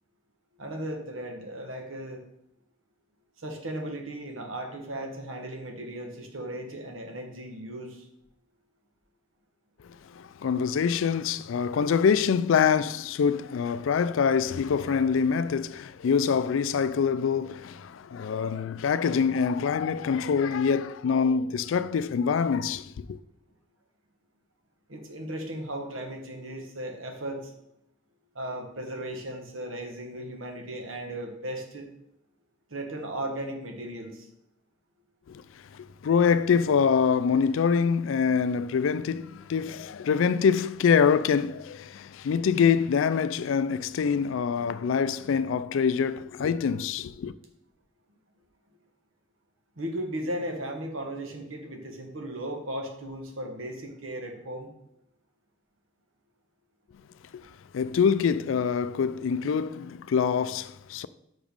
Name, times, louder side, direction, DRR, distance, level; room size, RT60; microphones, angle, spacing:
voice 1, 0.6-2.2 3.4-8.1 24.9-27.5 28.3-31.9 32.7-34.3 49.8-54.7, right 1 dB, 75° right, 1.3 m, -36 dB
voice 2, 10.1-23.2 35.3-35.4 35.7-47.3 57.3-57.4 57.7-61.1, left 6 dB, 70° left, 0.3 m, -25 dB
6.1 x 5.0 x 5.2 m
head